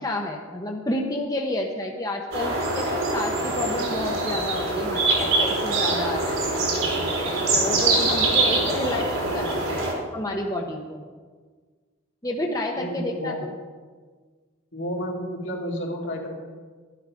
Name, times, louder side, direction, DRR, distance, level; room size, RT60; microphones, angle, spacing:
voice 1, 0.0-6.4 7.5-9.8 10.1-11.0 12.2-13.5, left 1 dB, 15° left, 1 dB, 0.9 m, -30 dB
sound 1, 2.3-9.9, right 2 dB, 85° right, 4.1 m, -24 dB
voice 2, 12.7-13.4 14.7-16.4, equal, 70° left, -1 dB, 2.4 m, -31 dB
12.0 x 11.5 x 5.1 m, 1.5 s
head